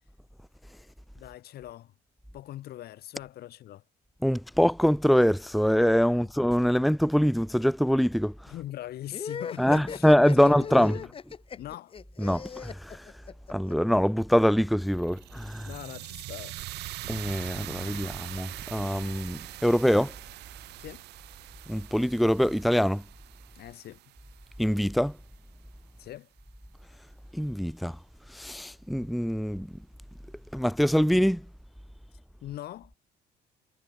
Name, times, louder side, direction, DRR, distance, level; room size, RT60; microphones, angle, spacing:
voice 1, 1.1-1.9 2.3-3.8 6.2-6.3 8.5-10.1 10.3-11.1 11.6-12.0 15.6-16.6 20.8-21.1 23.5-24.1 26.0-26.3 32.4-32.9, left 13 dB, 70° left, 2.9 m, -41 dB
voice 2, 4.2-8.5 9.6-10.9 12.2-13.1 13.5-15.7 17.1-20.1 21.7-23.0 24.6-25.1 27.3-28.0 28.3-29.7 30.5-31.4, equal, ahead, 0.8 m, -24 dB
sound 1, 9.1-13.7, left 6 dB, 35° left, 1.1 m, -38 dB
sound 2, 14.8-25.0, right 17 dB, 80° right, 7.4 m, -43 dB
cardioid pair, 110°, 17 cm